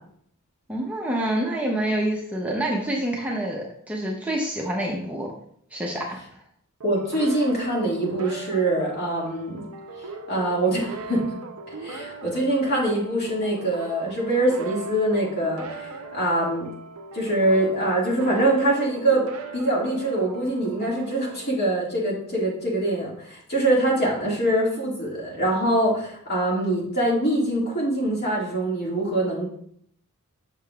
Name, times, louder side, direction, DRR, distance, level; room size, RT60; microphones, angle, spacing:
voice 1, 0.7-5.3 5.7-6.2, right 1 dB, 5° right, -2 dB, 0.7 m, -27 dB
voice 2, 6.8-9.6 10.3-11.3 11.7-16.7 17.1-19.3 19.5-29.5, right 1 dB, 45° left, -3 dB, 1.9 m, -24 dB
sound 1, 6.8-22.2, right 3 dB, 75° right, 0.6 m, -39 dB
6.6 x 6.5 x 2.3 m, 0.67 s
head